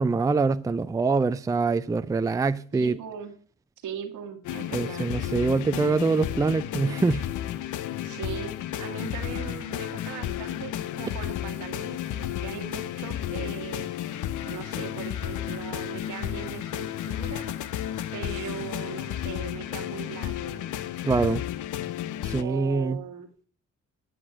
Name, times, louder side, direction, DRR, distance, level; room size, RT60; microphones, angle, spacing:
voice 1, 0.0-3.0 4.7-7.2 21.0-21.4 22.2-23.0, right 4 dB, 10° right, 0.4 m, -24 dB
voice 2, 2.7-3.3 3.8-5.1 8.0-13.9 14.4-17.5 18.1-20.7 22.4-23.3, right 8 dB, 80° right, 1.8 m, -39 dB
sound 1, 4.4-22.4, left 11 dB, 80° left, 0.7 m, -32 dB
10.0 x 6.1 x 6.1 m
cardioid pair, 90°, 30 cm